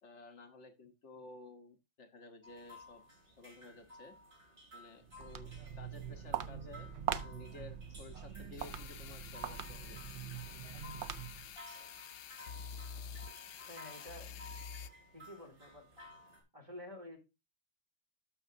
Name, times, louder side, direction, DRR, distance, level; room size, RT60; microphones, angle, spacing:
voice 1, 0.0-3.0 3.4-4.1 4.7-10.0, left 3 dB, 65° left, 6 dB, 1.3 m, -54 dB
sound 1, 2.4-16.4, left 1 dB, 50° right, 3.3 m, -56 dB
Walk footsteps, 5.0-11.6, right 9 dB, 65° right, 0.9 m, -42 dB
sound 2, 8.6-14.9, left 7 dB, 85° left, 1.0 m, -49 dB
voice 2, 13.7-14.3 15.1-15.8 16.5-17.2, left 1 dB, 25° right, 0 dB, 2.8 m, -50 dB
12.5 x 6.2 x 2.6 m, 0.25 s
omnidirectional pair, 1.3 m